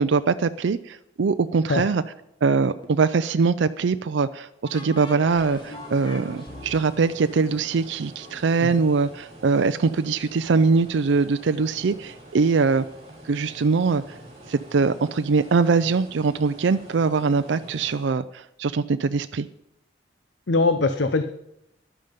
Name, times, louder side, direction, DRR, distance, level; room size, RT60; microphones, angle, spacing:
voice 1, 0.0-2.0 2.4-12.8 13.2-14.0 14.5-19.5, right 4 dB, 75° right, 11 dB, 0.4 m, -22 dB
sound 1, 2.5-3.4 4.7-8.3, left 1 dB, 25° left, 1.6 m, -42 dB
sound 2, 5.2-18.2, right 1 dB, 35° right, 5.5 m, -45 dB
voice 2, 20.5-21.2, left 3 dB, 70° left, 9 dB, 0.7 m, -21 dB
13.0 x 11.0 x 5.2 m, 0.82 s
head